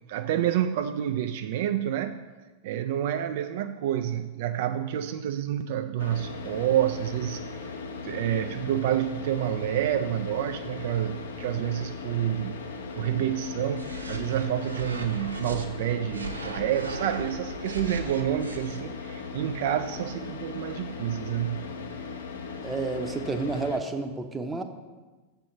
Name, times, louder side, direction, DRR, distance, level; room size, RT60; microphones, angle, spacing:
voice 1, 0.1-2.2 2.6-7.7 8.0-12.6 12.9-21.7, right 11 dB, 55° right, 8 dB, 0.3 m, -28 dB
Car / Idling, 6.0-23.8, left 5 dB, 65° left, 0.8 m, -38 dB
sound 1, 13.7-15.6 16.1-18.8, right 2 dB, 80° right, 0.7 m, -38 dB
voice 2, 22.6-24.6, right 3 dB, 10° right, 6 dB, 0.7 m, -30 dB
7.0 x 4.5 x 6.8 m, 1.3 s
figure-of-eight pair, 90°, 0 cm